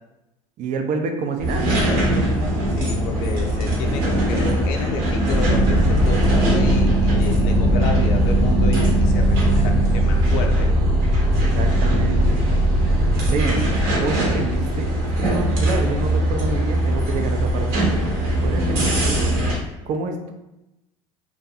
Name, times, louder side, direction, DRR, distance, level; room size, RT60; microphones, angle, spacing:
voice 1, 0.6-1.7 11.4-12.4 13.2-17.8 18.4-19.2 19.9-20.3, right 4 dB, 45° right, 5 dB, 0.5 m, -28 dB
sound 1, 1.4-19.5, right 1 dB, 65° right, 0.9 m, -22 dB
voice 2, 2.8-10.7, left 3 dB, 65° left, 4 dB, 0.4 m, -30 dB
sound 2, 5.3-14.0, right 1 dB, 5° left, 0.7 m, -19 dB
2.5 x 2.1 x 2.8 m, 0.94 s
hypercardioid pair, 80°, 18 cm